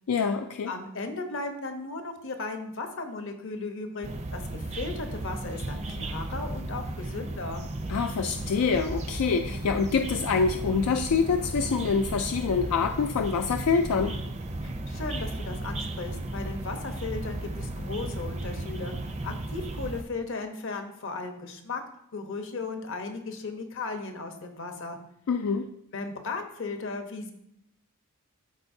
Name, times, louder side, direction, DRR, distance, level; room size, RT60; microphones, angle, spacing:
voice 1, 0.1-0.7 7.9-14.2 25.3-25.7, left 5 dB, 85° left, 6 dB, 0.4 m, -26 dB
voice 2, 0.7-7.6 14.6-18.9 19.2-21.8 22.1-25.0 25.9-27.3, left 3 dB, 60° left, 5 dB, 0.9 m, -36 dB
sound 1, 4.0-20.0, right 1 dB, 30° right, 0.5 m, -35 dB
12.5 x 4.3 x 2.7 m, 0.75 s
head